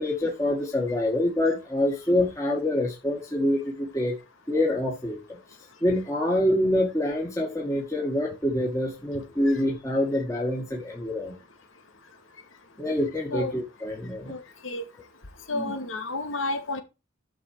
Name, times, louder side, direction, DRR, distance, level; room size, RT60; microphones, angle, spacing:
voice 1, 0.0-4.1 4.5-5.2 5.8-11.3 12.8-14.3 15.5-15.6, left 1 dB, 15° left, 2.1 m, -26 dB
voice 2, 14.3-14.8 15.5-16.8, left 2 dB, 80° left, 2.2 m, -31 dB
11.0 x 6.4 x 4.7 m
head